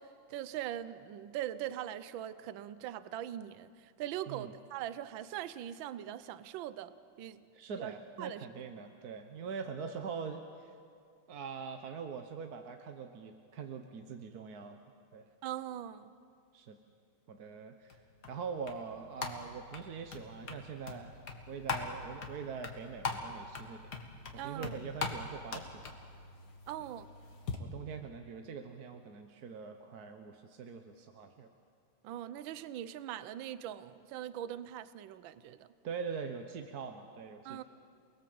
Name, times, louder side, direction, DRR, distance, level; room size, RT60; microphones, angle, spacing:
voice 1, 0.0-7.4 7.8-8.5 15.4-16.1 24.4-24.7 26.7-27.1 32.0-35.7 37.4-37.6, right 11 dB, 70° right, 14 dB, 1.5 m, -41 dB
voice 2, 7.5-10.7 11.3-14.8 15.1-15.2 16.5-16.8 17.3-18.0 18.3-21.2 21.5-23.9 24.3-25.8 27.6-31.5 35.8-37.6, right 6 dB, 55° right, 6 dB, 1.4 m, -43 dB
sound 1, 17.9-27.6, left 4 dB, 50° left, 2.2 m, -42 dB
28.5 x 20.5 x 7.8 m, 2.3 s
omnidirectional pair, 2.3 m